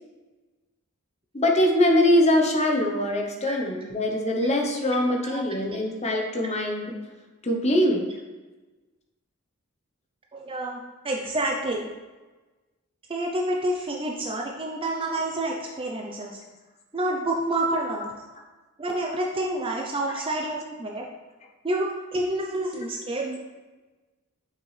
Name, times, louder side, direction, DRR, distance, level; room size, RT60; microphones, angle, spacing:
voice 1, 1.3-6.9 7.4-8.1 17.7-17.8 20.1-20.2, left 1 dB, 30° left, 1 dB, 0.9 m, -23 dB
voice 2, 10.3-11.9 13.1-16.4 16.9-18.1 18.8-21.1 21.6-23.4, right 1 dB, 25° right, 0 dB, 0.6 m, -28 dB
6.8 x 5.9 x 3.3 m, 1.2 s
head